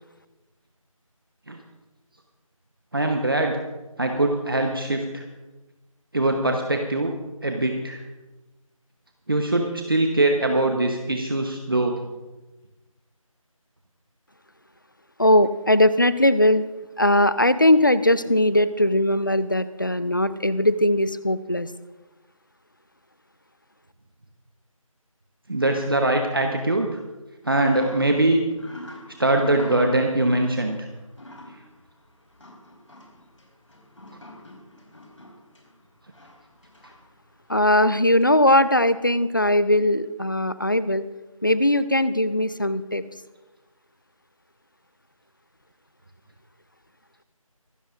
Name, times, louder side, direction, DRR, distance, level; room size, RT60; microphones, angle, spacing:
voice 1, 2.9-3.6 4.0-5.2 6.1-7.1 7.4-8.0 9.3-12.0 25.5-27.0 27.4-28.4 29.2-30.8, right 2 dB, 40° right, 3 dB, 1.0 m, -22 dB
voice 2, 15.2-16.7 17.0-21.7 37.5-41.1 41.4-43.0, left 1 dB, 35° left, 15 dB, 0.5 m, -20 dB
sound 1, 27.7-39.0, left 1 dB, 60° left, 4.5 m, -47 dB
24.5 x 13.0 x 2.5 m, 1.1 s
figure-of-eight pair, 170°, 18 cm